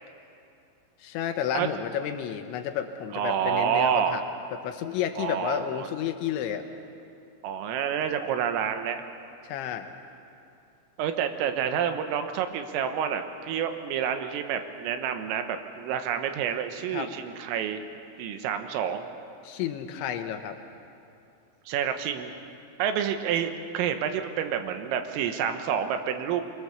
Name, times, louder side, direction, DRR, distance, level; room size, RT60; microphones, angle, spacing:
voice 1, 1.0-4.2 4.5-6.6 9.4-9.9 16.9-17.1 19.4-20.6, left 9 dB, 75° left, 6 dB, 3.1 m, -31 dB
voice 2, 3.1-4.2 5.2-5.9 7.4-9.0 11.0-17.8 18.2-19.0 21.7-22.3 22.8-26.4, right 8 dB, 90° right, 7 dB, 3.8 m, -28 dB
24.5 x 23.5 x 7.2 m, 2.6 s
omnidirectional pair, 5.9 m